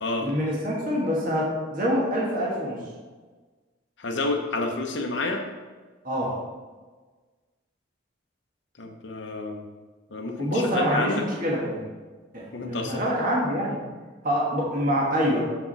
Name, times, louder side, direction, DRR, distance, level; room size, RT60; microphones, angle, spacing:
voice 1, 0.2-2.8 6.0-6.4 10.4-11.8 12.3-13.8 14.2-15.4, equal, 45° right, -4 dB, 1.5 m, -25 dB
voice 2, 4.0-5.4 8.8-9.6 10.1-11.2 12.5-13.0, left 2 dB, 70° left, 3 dB, 0.8 m, -29 dB
7.2 x 6.1 x 4.0 m, 1.4 s
head